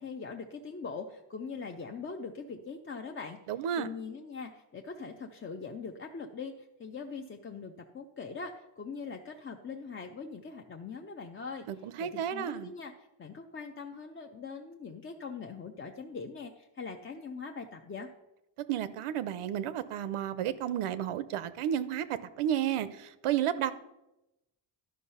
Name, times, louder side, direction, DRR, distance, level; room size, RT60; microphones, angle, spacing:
voice 1, 0.0-3.4 3.8-12.9 13.2-18.1, left 5 dB, 25° left, 3 dB, 0.4 m, -42 dB
voice 2, 3.5-3.9 11.7-12.7 18.7-23.7, right 10 dB, 85° right, 14 dB, 0.8 m, -32 dB
12.0 x 5.4 x 5.5 m, 0.94 s
wide cardioid pair, 160°, 50 cm